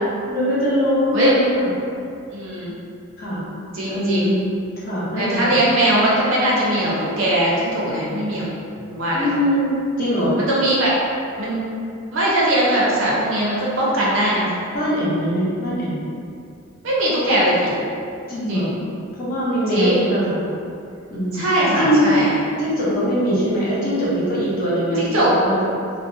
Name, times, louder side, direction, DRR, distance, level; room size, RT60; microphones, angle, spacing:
voice 1, 0.3-1.7 3.2-3.4 3.9-4.4 4.8-5.6 9.1-10.4 14.7-16.0 18.3-18.7 19.2-20.4 21.1-21.4 21.7-22.3 22.6-25.6, equal, 45° left, -9 dB, 0.8 m, -21 dB
voice 2, 2.3-2.7 3.7-4.3 5.2-8.4 8.9-9.3 10.4-11.0 11.4-11.6 12.1-14.5 16.8-17.7 18.5-18.7 19.7-20.2 21.3-22.3 25.0-25.3, right 1 dB, 70° right, -6 dB, 0.7 m, -20 dB
2.6 x 2.0 x 2.6 m, 2.5 s
head